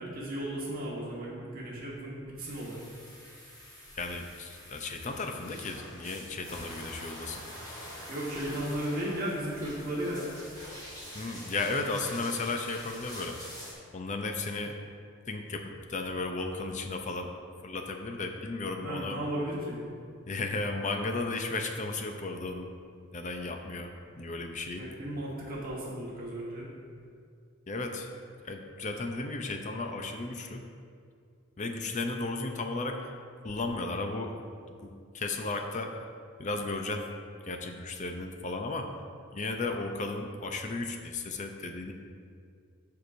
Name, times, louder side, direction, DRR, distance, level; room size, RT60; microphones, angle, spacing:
voice 1, 0.0-2.8 8.1-10.3 18.8-19.9 24.7-26.7, right 1 dB, 45° right, -5 dB, 1.4 m, -35 dB
sound 1, 2.4-13.7, equal, 15° left, 1.5 m, -46 dB
voice 2, 4.0-7.4 11.1-13.5 13.9-14.8 15.3-17.3 17.6-19.2 20.3-22.7 23.1-24.8 27.7-28.1 28.4-30.6 31.6-33.1 33.4-34.4 34.7-36.1 36.4-37.1 37.4-38.9 39.3-41.9, left 3 dB, 35° left, 4 dB, 0.6 m, -34 dB
13.5 x 4.8 x 2.6 m, 2.3 s
head